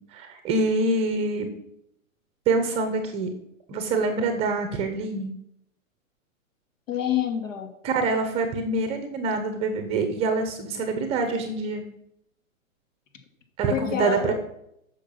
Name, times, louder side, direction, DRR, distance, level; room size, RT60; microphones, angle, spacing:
voice 1, 0.1-1.5 2.5-3.3 3.7-5.3 7.8-11.8 13.6-14.3, right 3 dB, 15° right, 7 dB, 0.8 m, -25 dB
voice 2, 6.9-7.7 13.7-14.3, left 9 dB, 65° left, 5 dB, 2.6 m, -27 dB
10.0 x 6.5 x 7.1 m, 0.79 s
hypercardioid pair, 155°, 41 cm